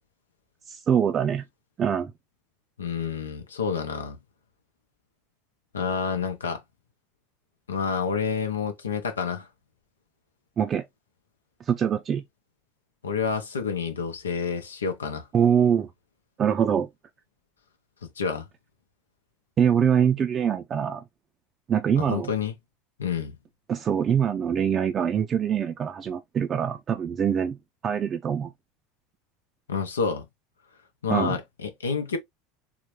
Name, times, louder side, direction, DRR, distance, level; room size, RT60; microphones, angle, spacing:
voice 1, 0.7-1.4 1.8-2.1 10.6-10.8 11.7-12.2 15.3-15.9 16.4-16.9 19.6-21.0 21.7-22.3 23.7-27.6 27.8-28.5 31.1-31.4, right 8 dB, 35° right, 0.5 m, -24 dB
voice 2, 2.8-4.2 5.7-6.6 7.7-9.5 13.0-15.3 18.2-18.4 22.0-22.5 23.0-23.4 29.7-30.3 31.0-32.2, left 6 dB, 90° left, 0.7 m, -28 dB
3.8 x 2.1 x 3.0 m
hypercardioid pair, 80°, 0 cm